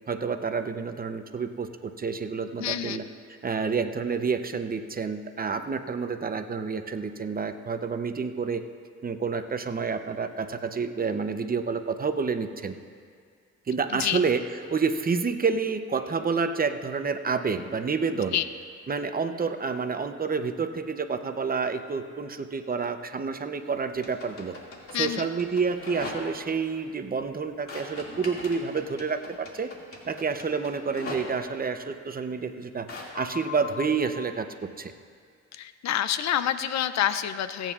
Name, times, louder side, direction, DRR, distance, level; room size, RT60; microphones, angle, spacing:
voice 1, 0.1-3.0 3.4-8.6 9.0-12.7 13.7-14.4 14.7-18.4 18.9-24.6 24.9-29.7 30.0-32.9 33.1-34.9, right 5 dB, 30° right, 8 dB, 0.7 m, -29 dB
voice 2, 2.6-3.0 13.9-14.2 18.3-18.5 24.9-25.3 35.5-37.7, left 11 dB, 65° left, 13 dB, 0.5 m, -27 dB
sound 1, 23.9-26.5 27.7-31.2 32.9-34.0, left 3 dB, 50° left, 2.3 m, -39 dB
26.0 x 9.0 x 2.4 m, 2.2 s
cardioid pair, 80°, 29 cm